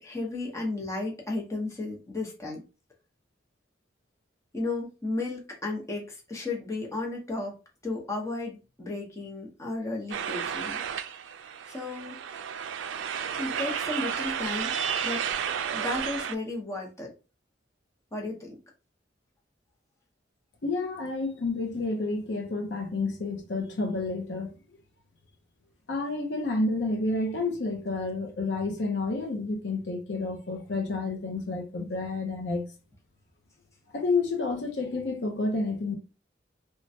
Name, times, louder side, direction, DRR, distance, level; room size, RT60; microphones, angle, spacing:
voice 1, 0.0-2.6 4.5-7.6 7.8-10.8 11.7-12.2 13.4-14.7 15.0-15.3 15.7-17.1 18.1-18.6, left 2 dB, 15° left, 0.8 m, -34 dB
sound 1, 10.1-16.4, right 7 dB, 80° right, 0.3 m, -32 dB
voice 2, 20.6-24.5 25.9-32.7 33.9-36.0, left 3 dB, 65° left, 0.6 m, -30 dB
3.1 x 2.2 x 2.6 m
head